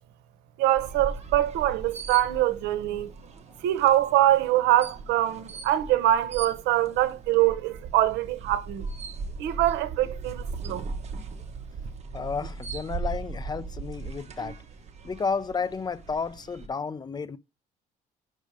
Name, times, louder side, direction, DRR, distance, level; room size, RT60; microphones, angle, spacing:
voice 1, 0.6-3.1 3.6-8.9 9.4-10.8, right 13 dB, 90° right, 0.8 m, -24 dB
sound 1, 0.7-16.7, right 4 dB, 40° right, 1.3 m, -39 dB
voice 2, 12.1-14.5 15.0-17.4, left 5 dB, 25° left, 0.5 m, -32 dB
6.2 x 5.2 x 4.7 m
cardioid pair, 110°, 17 cm